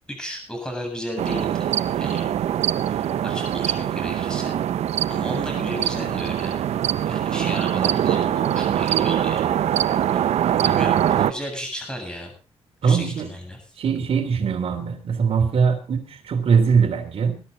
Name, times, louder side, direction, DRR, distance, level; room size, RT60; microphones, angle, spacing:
voice 1, 0.1-1.7 2.0-2.4 2.8-4.6 5.1-6.7 7.1-9.5 10.1-10.2 10.6-12.3 12.8-13.6, equal, 5° left, 3 dB, 7.9 m, -34 dB
sound 1, 1.2-11.3, right 10 dB, 80° right, 0.7 m, -23 dB
voice 2, 12.8-13.3 13.8-17.4, right 6 dB, 65° right, 3 dB, 3.1 m, -21 dB
21.0 x 11.5 x 4.0 m, 0.37 s
cardioid pair, 100°, 11 cm